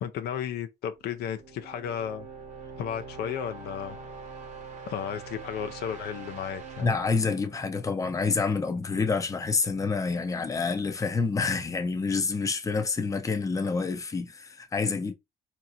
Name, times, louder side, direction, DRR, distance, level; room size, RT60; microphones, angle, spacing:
voice 1, 0.0-2.3 2.8-4.0 4.9-6.9, left 8 dB, 70° left, 0.5 m, -34 dB
sound 1, 1.0-8.8, right 5 dB, 45° right, 1.0 m, -44 dB
voice 2, 6.8-15.1, left 4 dB, 20° left, 0.6 m, -28 dB
3.9 x 2.9 x 2.4 m
cardioid pair, 110°, 17 cm